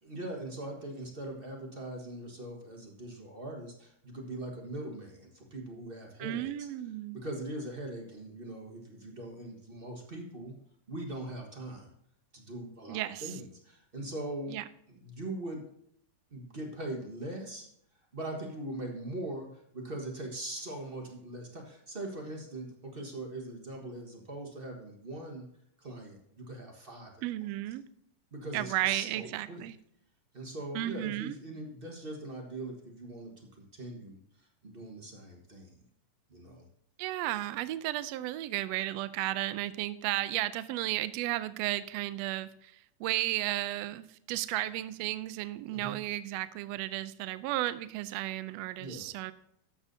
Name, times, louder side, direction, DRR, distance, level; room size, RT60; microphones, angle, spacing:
voice 1, 0.0-6.7 7.1-10.5 10.9-11.9 12.3-14.5 14.9-15.6 16.3-17.7 18.1-25.5 25.8-27.1 28.3-29.7 30.3-35.8 36.3-36.7 45.7-46.0 48.8-49.1, right 1 dB, 50° right, 1 dB, 0.6 m, -41 dB
voice 2, 6.2-7.2 12.9-13.3 14.5-14.6 27.2-27.8 28.5-29.7 30.7-31.4 37.0-42.7 43.0-49.3, right 15 dB, 90° right, 14 dB, 1.5 m, -33 dB
13.5 x 8.4 x 2.7 m, 0.72 s
omnidirectional pair, 3.6 m